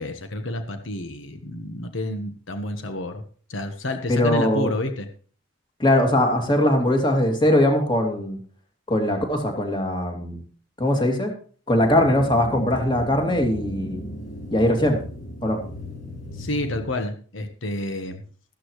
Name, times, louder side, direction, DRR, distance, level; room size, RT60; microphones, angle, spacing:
voice 1, 0.0-3.2 3.5-5.1 16.4-18.2, left 1 dB, 80° left, 6 dB, 1.2 m, -29 dB
voice 2, 4.1-4.7 5.8-8.4 8.9-10.4 10.8-11.3 11.7-14.0 14.5-15.0 15.4-15.6, left 1 dB, 25° left, 2 dB, 2.5 m, -21 dB
sound 1, 11.8-16.8, equal, 45° left, 6.0 m, -35 dB
13.5 x 13.0 x 3.2 m, 0.42 s
head